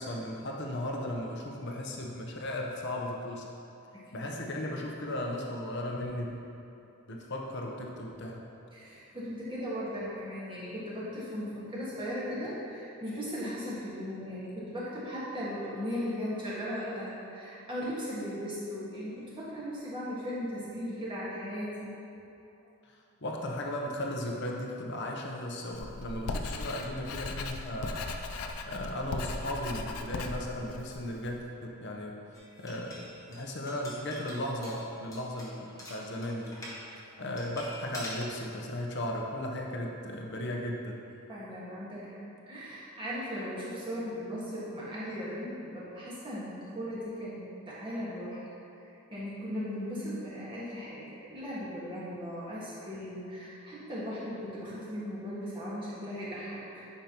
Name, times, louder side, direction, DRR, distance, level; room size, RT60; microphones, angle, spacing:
voice 1, 0.0-3.5 4.1-6.4 7.1-8.4 22.9-28.0 28.6-32.1 32.6-36.7 37.0-41.0, left 1 dB, 50° left, 0 dB, 0.8 m, -36 dB
voice 2, 3.9-4.3 8.7-21.9 37.0-37.2 41.3-42.2 42.5-48.4 48.8-56.9, equal, 20° right, -9 dB, 1.6 m, -37 dB
Writing, 25.7-31.4, left 3 dB, 85° left, 0.5 m, -38 dB
sound 1, 32.3-36.8 37.4-38.3, left 1 dB, 15° left, 1.1 m, -46 dB
10.5 x 5.4 x 3.0 m, 2.8 s
head